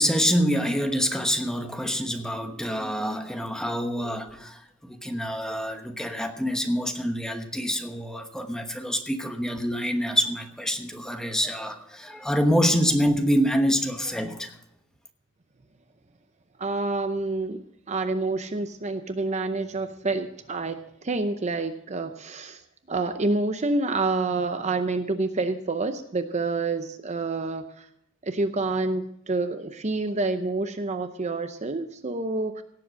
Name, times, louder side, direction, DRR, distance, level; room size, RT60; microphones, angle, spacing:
voice 1, 0.0-14.5, equal, 5° left, 5 dB, 1.1 m, -26 dB
voice 2, 16.6-17.6 17.9-22.6 22.9-27.9 28.2-32.6, right 3 dB, 35° right, 9 dB, 0.7 m, -28 dB
17.0 x 7.8 x 6.3 m, 0.75 s
head